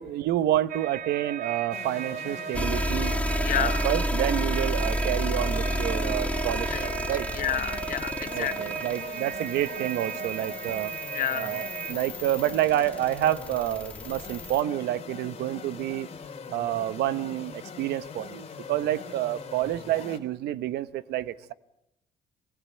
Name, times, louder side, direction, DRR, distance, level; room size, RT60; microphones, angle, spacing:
voice 1, 0.0-3.2 3.5-7.3 8.3-10.9 11.3-16.1 16.5-21.5, right 13 dB, 75° right, 15 dB, 1.0 m, -29 dB
sound 1, 0.7-11.9, right 8 dB, 55° right, 1.6 m, -36 dB
sound 2, 1.7-20.2, left 5 dB, 35° left, 3.1 m, -42 dB
sound 3, 2.5-14.6, equal, 10° left, 1.2 m, -31 dB
voice 2, 3.4-3.9 6.7-8.5 11.1-11.6, left 10 dB, 55° left, 12 dB, 1.3 m, -30 dB
25.0 x 21.0 x 9.1 m, 0.85 s
cardioid pair, 110°, 17 cm